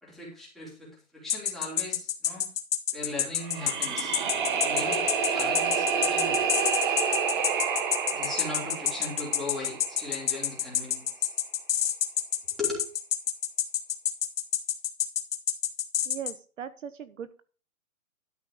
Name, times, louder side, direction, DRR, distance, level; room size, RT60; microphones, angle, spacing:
voice 1, 0.0-2.5 2.9-4.1 4.5-6.4 8.1-11.3 12.6-12.9, left 2 dB, ahead, -7 dB, 3.4 m, -38 dB
sound 1, 1.3-16.3, left 10 dB, 40° left, 1.6 m, -27 dB
sound 2, 3.4-10.5, right 6 dB, 35° right, 1.2 m, -29 dB
voice 2, 16.0-17.4, right 8 dB, 60° right, 13 dB, 0.9 m, -39 dB
12.5 x 5.7 x 5.1 m, 0.38 s
hypercardioid pair, 165°, 42 cm